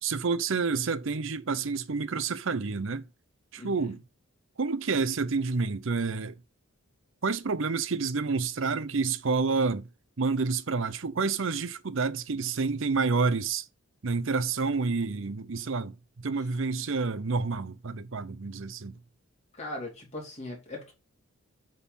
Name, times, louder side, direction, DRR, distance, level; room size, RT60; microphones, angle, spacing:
voice 1, 0.0-3.0 3.5-4.0 4.6-6.4 7.2-9.9 10.2-13.7 14.0-19.0, right 4 dB, 60° right, 0.6 m, -29 dB
voice 2, 3.6-3.9 19.6-20.9, left 2 dB, 30° left, 2.7 m, -39 dB
8.2 x 3.9 x 5.4 m
head